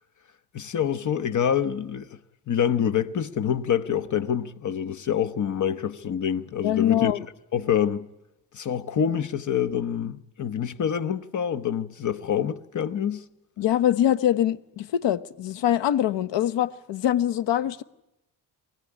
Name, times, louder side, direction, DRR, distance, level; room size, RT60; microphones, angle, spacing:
voice 1, 0.5-2.2 2.5-7.1 7.5-8.1 8.5-13.2, left 8 dB, 45° left, 1.0 m, -26 dB
voice 2, 6.6-7.2 13.6-17.8, left 11 dB, 85° left, 1.2 m, -23 dB
24.0 x 16.5 x 10.0 m
cardioid pair, 150°, 42 cm